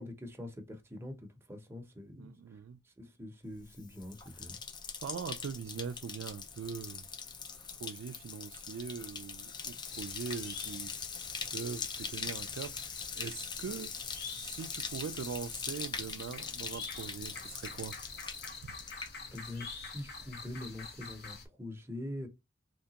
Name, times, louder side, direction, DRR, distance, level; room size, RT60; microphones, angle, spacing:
voice 1, 0.0-2.6 2.8-4.6 19.3-22.3, left 1 dB, 10° right, 0.7 m, -44 dB
voice 2, 2.1-2.8 5.0-7.1 7.7-10.9 11.5-14.0 14.4-18.0 18.6-18.7, right 6 dB, 80° right, 0.3 m, -42 dB
Bathtub (filling or washing), 3.6-19.7 20.0-20.5, left 5 dB, 20° left, 0.4 m, -42 dB
sound 1, 9.9-21.5, left 4 dB, 55° left, 0.9 m, -47 dB
3.4 x 2.8 x 2.8 m
head